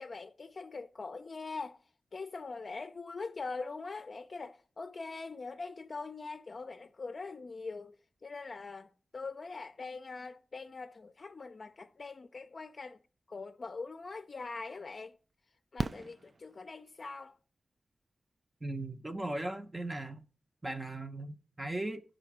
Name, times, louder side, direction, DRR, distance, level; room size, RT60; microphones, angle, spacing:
voice 1, 0.0-1.8 2.1-8.0 8.2-13.0 13.3-15.2 15.7-17.4, left 4 dB, 50° left, 0.5 m, -42 dB
Fireworks, 14.1-14.2 15.8-17.1 18.9-19.0 19.2-19.3, right 3 dB, 45° right, 0.3 m, -38 dB
voice 2, 18.6-20.2 20.6-22.0, right 2 dB, 25° right, 0.7 m, -38 dB
10.5 x 5.0 x 5.9 m
wide cardioid pair, 100°, 0 cm